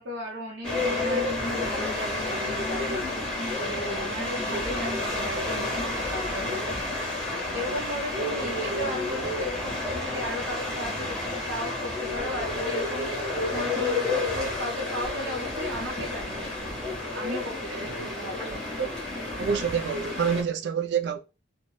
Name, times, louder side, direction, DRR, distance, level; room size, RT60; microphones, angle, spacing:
voice 1, 0.0-3.0 3.7-6.9 7.5-13.1 13.5-16.5 17.1-18.6, equal, 80° right, 0.8 m, -36 dB
sound 1, 0.6-20.4, left 2 dB, 5° left, 1.0 m, -30 dB
voice 2, 17.7-18.1 18.8-19.0 19.4-21.2, right 7 dB, 65° right, 0.3 m, -28 dB
2.5 x 2.1 x 3.1 m
head